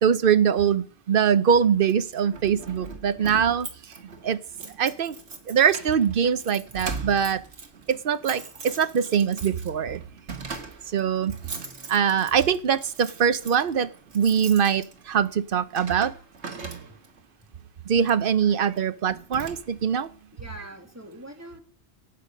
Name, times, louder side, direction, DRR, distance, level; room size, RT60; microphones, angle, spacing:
voice 1, 0.0-3.7 4.2-4.4 4.8-5.2 5.5-7.4 7.9-10.0 10.9-11.3 11.9-16.1 17.9-20.1, right 7 dB, 55° right, 13 dB, 0.9 m, -23 dB
Keys jangling, 1.9-17.2 18.0-18.3 18.7-18.8 19.1-20.0, right 4 dB, 80° right, 1.9 m, -40 dB
voice 2, 20.3-21.6, equal, 15° right, 4 dB, 2.1 m, -44 dB
18.0 x 8.3 x 5.2 m, 0.43 s
omnidirectional pair, 1.1 m